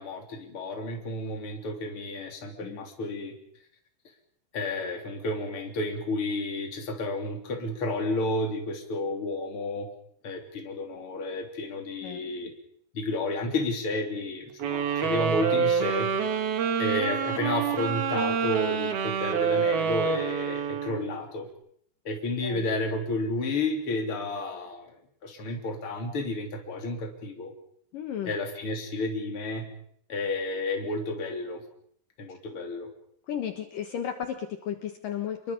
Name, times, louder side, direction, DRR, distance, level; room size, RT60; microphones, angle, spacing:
voice 1, 0.0-3.3 4.5-9.9 10.2-12.5 12.9-16.1 16.8-21.5 22.1-25.0 25.2-27.5 28.2-29.7 30.1-31.6 32.2-32.9, left 2 dB, 35° left, 3 dB, 3.8 m, -31 dB
sound 1, 14.6-21.2, right 6 dB, 65° right, 4.2 m, -27 dB
voice 2, 27.9-28.3 33.3-35.5, left 8 dB, 60° left, 7 dB, 2.7 m, -34 dB
28.5 x 22.5 x 5.4 m, 0.66 s
omnidirectional pair, 4.8 m